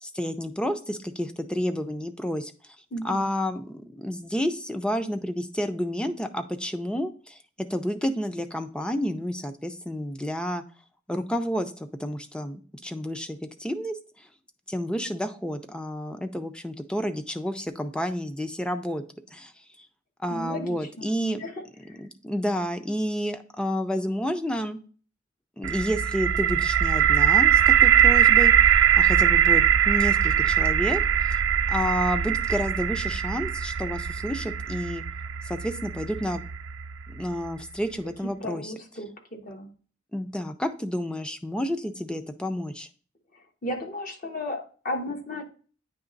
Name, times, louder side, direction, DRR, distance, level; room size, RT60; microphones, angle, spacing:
voice 1, 0.0-2.5 3.0-7.4 7.7-10.6 11.1-14.3 14.7-19.0 19.3-19.5 19.8-19.9 20.2-21.4 21.8-24.8 25.6-28.5 29.0-31.4 31.7-35.0 35.5-36.4 37.1-38.7 40.1-42.9, equal, 5° left, 9 dB, 0.5 m, -30 dB
voice 2, 2.9-3.3 20.3-21.1 21.4-21.5 38.4-39.7 43.6-45.4, left 1 dB, 45° left, 3 dB, 1.2 m, -34 dB
sound 1, 25.6-37.5, right 9 dB, 85° right, 0.5 m, -21 dB
9.1 x 3.2 x 3.9 m, 0.40 s
head